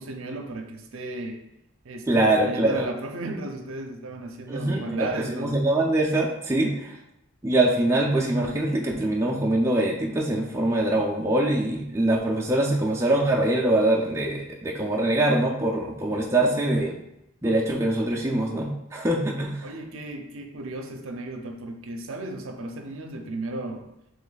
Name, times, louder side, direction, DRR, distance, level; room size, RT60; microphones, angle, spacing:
voice 1, 0.0-1.4 1.8-5.6 6.6-6.8 19.6-23.9, right 2 dB, 70° right, 4 dB, 0.5 m, -35 dB
voice 2, 2.1-2.9 4.5-7.0 7.4-17.0 17.4-19.7, right 1 dB, 10° right, -2 dB, 0.3 m, -23 dB
3.1 x 3.0 x 4.0 m, 0.82 s
head